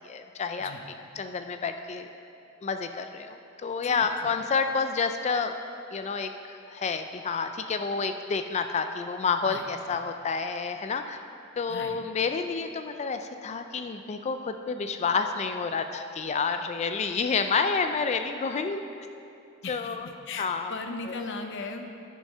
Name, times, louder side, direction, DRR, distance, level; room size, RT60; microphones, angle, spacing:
voice 1, 0.0-0.7 1.2-2.1 2.6-5.5 5.9-11.2 11.6-18.8 19.7-20.1 20.4-20.7, left 5 dB, 30° left, 7 dB, 0.3 m, -29 dB
voice 2, 3.8-4.3 9.4-10.0 11.7-12.0 19.6-19.9 20.3-21.9, left 3 dB, 60° left, 5 dB, 0.7 m, -38 dB
10.5 x 6.3 x 5.4 m, 2.6 s
head